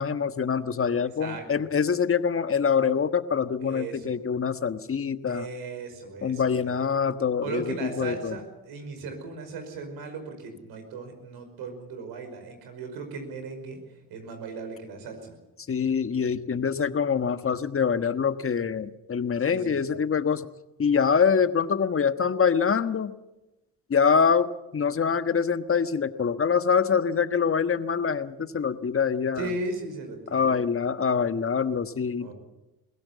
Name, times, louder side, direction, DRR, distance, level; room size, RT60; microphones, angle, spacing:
voice 1, 0.0-5.5 6.2-7.6 8.0-8.3 15.7-20.5 20.8-23.1 23.9-29.4 30.3-32.3, left 6 dB, 35° left, 11 dB, 1.4 m, -25 dB
voice 2, 1.0-1.7 3.6-4.2 5.3-6.8 7.4-13.8 14.1-15.4 16.3-16.4 19.4-20.0 29.3-30.6 32.2-32.3, right 3 dB, 80° right, 6 dB, 5.4 m, -37 dB
22.0 x 16.5 x 8.5 m, 1.0 s
supercardioid pair, 65°, 38 cm